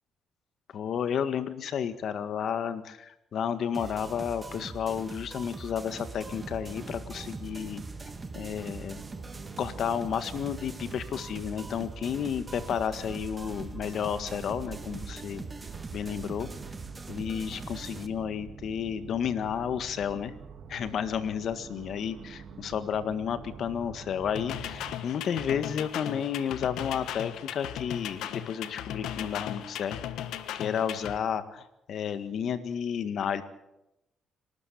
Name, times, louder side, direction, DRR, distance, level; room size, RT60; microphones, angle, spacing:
voice 1, 0.7-7.8 8.4-9.0 9.6-15.4 15.9-16.5 17.1-20.3 20.7-30.0 30.5-33.4, left 8 dB, 65° left, 11 dB, 1.8 m, -32 dB
sound 1, 3.7-18.1, right 3 dB, 25° right, 1.8 m, -42 dB
sound 2, 6.1-25.0, right 6 dB, 65° right, 2.7 m, -46 dB
sound 3, 24.4-31.2, left 11 dB, 85° left, 1.3 m, -37 dB
27.0 x 12.5 x 8.7 m, 0.89 s
cardioid pair, 90°, 0 cm